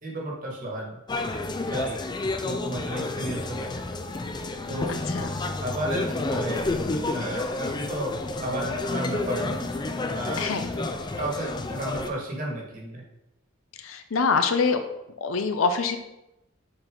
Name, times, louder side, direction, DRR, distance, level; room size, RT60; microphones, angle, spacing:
voice 1, 0.0-1.0 1.7-2.0 2.4-3.7 4.7-5.0 5.6-6.7 7.1-8.1 8.4-9.6 10.1-10.9 11.2-13.0, right 1 dB, 40° right, -2 dB, 1.9 m, -33 dB
sound 1, 1.1-12.1, left 2 dB, 20° left, 0.4 m, -30 dB
voice 2, 4.9-5.3 10.4-10.7 13.8-14.8 15.2-16.0, left 4 dB, 85° left, 8 dB, 0.6 m, -25 dB
6.6 x 4.4 x 3.9 m, 0.90 s
head